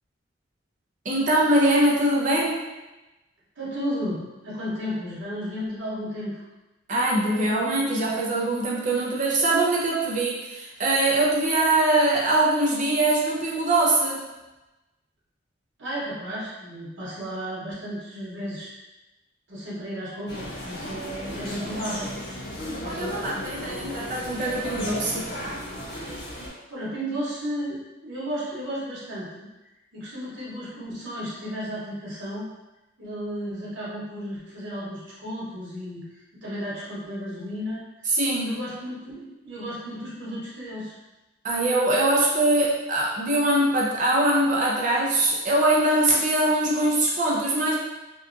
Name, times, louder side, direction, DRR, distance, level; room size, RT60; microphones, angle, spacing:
voice 1, 1.0-2.6 6.9-14.2 22.9-25.3 38.1-38.6 41.4-47.8, right 1 dB, 40° right, -4 dB, 0.5 m, -22 dB
voice 2, 3.6-6.4 15.8-18.7 19.5-22.2 26.7-29.5 29.9-32.5 33.0-36.1 36.4-38.1 38.4-41.0, equal, 85° right, -7 dB, 1.0 m, -33 dB
sound 1, 20.3-26.5, equal, 60° left, 0.7 m, -35 dB
2.7 x 2.3 x 2.5 m, 1.1 s
head